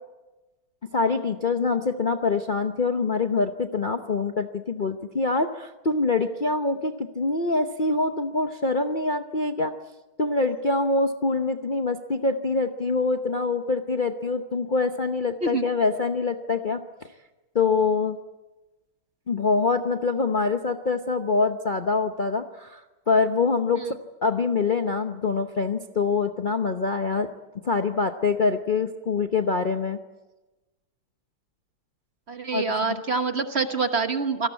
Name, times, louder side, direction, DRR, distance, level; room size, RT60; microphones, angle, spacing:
voice 1, 0.9-9.7 10.2-17.1 17.5-18.2 19.3-22.8 23.1-23.9 24.2-27.3 27.6-30.0 32.5-32.6, left 4 dB, 80° left, 5 dB, 0.4 m, -25 dB
voice 2, 32.3-34.5, right 4 dB, 40° right, 7 dB, 1.1 m, -26 dB
27.0 x 19.0 x 8.3 m, 1.1 s
omnidirectional pair, 2.4 m